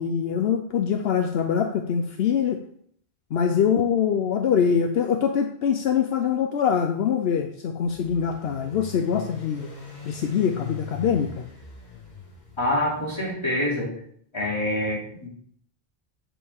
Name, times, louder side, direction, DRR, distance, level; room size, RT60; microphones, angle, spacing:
voice 1, 0.0-2.6 3.3-9.7 10.0-11.4, left 7 dB, 75° left, 6 dB, 0.9 m, -24 dB
sound 1, 7.8-13.3, left 5 dB, 45° left, 1.7 m, -41 dB
voice 2, 12.6-13.9 14.3-15.3, left 1 dB, 25° left, -5 dB, 2.9 m, -26 dB
8.6 x 7.1 x 3.6 m, 0.64 s
omnidirectional pair, 1.1 m